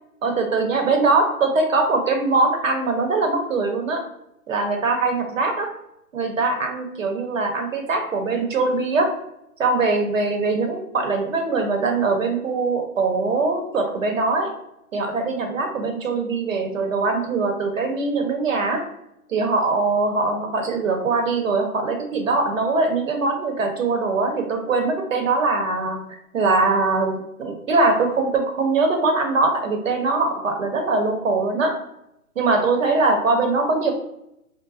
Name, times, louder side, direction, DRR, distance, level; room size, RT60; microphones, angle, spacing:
voice 1, 0.2-4.0 4.5-5.7 6.1-9.2 9.6-14.5 14.9-18.8 19.3-31.8 32.4-33.9, right 3 dB, 60° right, 4 dB, 0.9 m, -22 dB
4.8 x 2.1 x 2.5 m, 0.82 s
hypercardioid pair, 160°, 45 cm